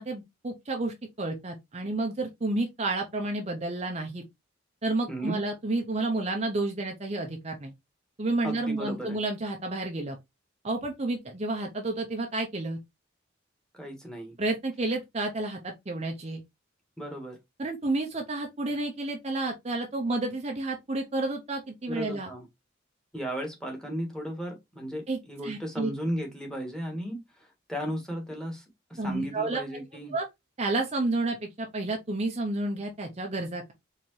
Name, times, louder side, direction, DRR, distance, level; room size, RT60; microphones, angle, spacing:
voice 1, 0.0-4.2 4.8-7.7 8.2-10.2 10.6-12.8 14.4-16.4 17.6-22.3 25.1-25.9 29.0-29.8 30.1-30.3 30.6-33.7, right 2 dB, 35° right, 0.7 m, -30 dB
voice 2, 5.1-5.4 8.4-9.2 13.7-14.3 17.0-17.4 21.9-22.5 23.1-30.1, equal, 5° left, 1.5 m, -35 dB
4.4 x 3.6 x 3.1 m
head